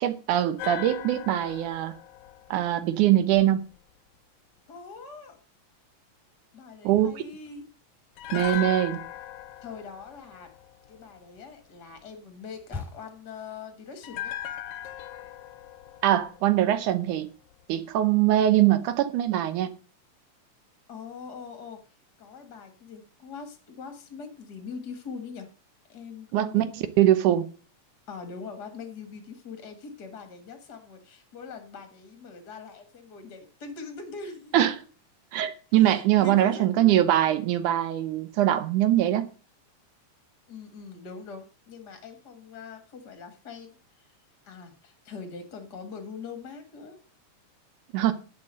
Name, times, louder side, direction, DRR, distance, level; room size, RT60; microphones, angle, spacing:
voice 1, 0.0-1.9 2.5-3.6 6.8-7.2 8.3-9.0 16.0-17.3 17.7-19.7 26.3-26.6 27.0-27.4 34.5-34.8 35.3-39.3 47.9-48.1, right 12 dB, 75° right, 2.3 m, -22 dB
sound 1, 0.6-3.8 8.2-11.4 14.0-17.2 17.5-17.7, left 13 dB, 75° left, 1.9 m, -39 dB
voice 2, 4.7-5.4 6.5-7.6 8.6-8.8 9.6-10.5 10.9-14.3 20.9-21.8 22.2-25.5 25.9-26.7 28.1-34.7 35.8-37.0 40.5-44.1 44.4-47.0, left 5 dB, 40° left, 1.6 m, -42 dB
sound 2, 6.7-7.9 8.2-13.3, left 4 dB, ahead, 1.7 m, -46 dB
10.5 x 7.6 x 6.4 m
omnidirectional pair, 3.7 m